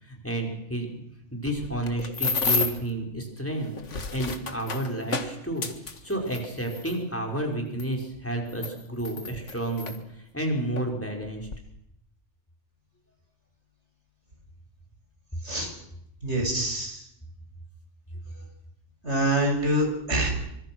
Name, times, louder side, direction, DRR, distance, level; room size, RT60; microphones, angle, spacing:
voice 1, 0.0-0.9 1.3-3.7 4.1-5.7 6.0-10.0 10.3-11.5 18.2-18.5, right 1 dB, 10° left, 1 dB, 5.5 m, -30 dB
sound 1, 1.5-2.9 3.6-7.0 7.8-7.9 8.5-10.0 10.8-10.9 11.2-11.6, left 4 dB, 85° left, 2.1 m, -31 dB
voice 2, 16.2-17.0 19.0-20.3, right 1 dB, 70° right, 3 dB, 7.0 m, -25 dB
25.5 x 25.5 x 6.3 m, 0.76 s
omnidirectional pair, 1.2 m